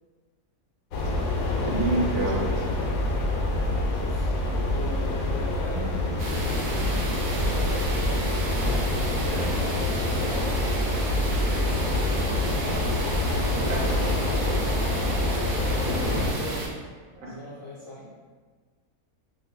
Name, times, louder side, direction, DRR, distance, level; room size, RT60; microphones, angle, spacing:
sound 1, 0.9-16.3, left 1 dB, 70° left, 1.0 m, -26 dB
voice 1, 1.6-2.7 13.6-14.0 17.1-17.3, right 2 dB, 70° right, -2 dB, 0.9 m, -28 dB
voice 2, 4.0-4.3 4.6-5.9 6.6-6.9 7.3-7.8 8.5-9.6 10.1-10.5 15.5-16.7 17.2-18.0, left 1 dB, 50° left, -9 dB, 0.7 m, -39 dB
sound 2, 6.2-16.7, right 2 dB, 90° right, 0.4 m, -33 dB
2.6 x 2.5 x 3.6 m, 1.5 s
omnidirectional pair, 1.6 m